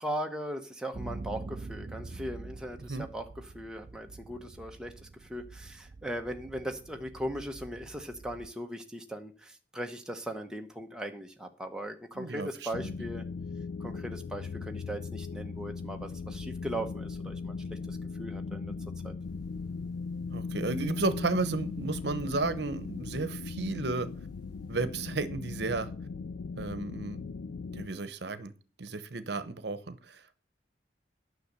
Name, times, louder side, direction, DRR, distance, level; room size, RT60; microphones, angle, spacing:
voice 1, 0.0-3.2 3.5-13.3 13.8-18.7 19.0-19.1, equal, 5° right, 3 dB, 1.0 m, -39 dB
sound 1, 0.9-8.5, right 3 dB, 40° right, 0.4 m, -45 dB
voice 2, 12.2-12.9 20.3-24.1 24.7-25.9 26.6-27.2 27.7-28.5 28.8-30.4, right 3 dB, 65° right, 14 dB, 0.9 m, -33 dB
sound 2, 12.7-27.9, left 4 dB, 85° left, 0.4 m, -38 dB
sound 3, 19.2-24.7, equal, 20° left, 6.4 m, -60 dB
10.0 x 6.4 x 6.7 m, 0.38 s
head